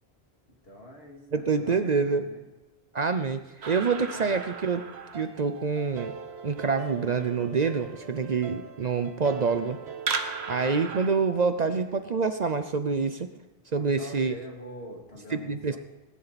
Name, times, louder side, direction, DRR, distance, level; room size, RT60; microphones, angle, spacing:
voice 1, 0.6-2.5 4.1-4.3 13.7-15.8, equal, 70° left, -1 dB, 2.8 m, -44 dB
voice 2, 1.3-2.3 2.9-4.9 5.1-6.1 6.4-9.8 10.5-13.3 13.7-14.3 15.3-15.8, right 5 dB, 45° right, 9 dB, 0.7 m, -26 dB
sound 1, 3.6-11.1, right 5 dB, 85° right, 1.3 m, -37 dB
20.5 x 10.0 x 4.1 m, 1.1 s
omnidirectional pair, 1.1 m